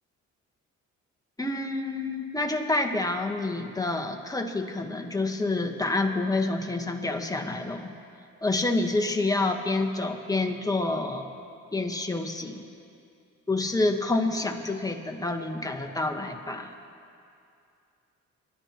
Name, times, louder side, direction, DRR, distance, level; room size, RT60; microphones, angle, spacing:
voice 1, 1.4-7.9 8.4-11.3 11.7-12.6 13.5-16.7, left 2 dB, 10° left, 4 dB, 1.2 m, -28 dB
25.0 x 12.0 x 2.9 m, 2.5 s
cardioid pair, 90°, 30 cm